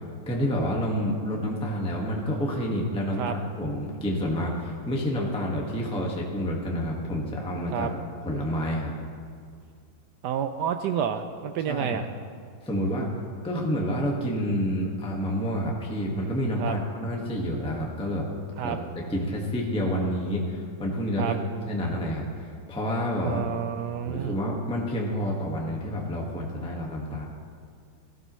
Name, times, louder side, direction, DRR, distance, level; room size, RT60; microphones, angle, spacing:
voice 1, 0.3-8.9 11.7-12.0 12.6-13.1 13.4-18.2 18.6-18.7 19.1-21.4 21.6-23.4 24.0-27.2, equal, 5° left, -2 dB, 1.2 m, -29 dB
voice 2, 10.2-12.1 16.6-16.8 18.6-18.8 21.2-21.4 23.2-24.4, right 8 dB, 75° right, 8 dB, 0.9 m, -29 dB
16.0 x 14.5 x 3.1 m, 2.1 s
omnidirectional pair, 2.3 m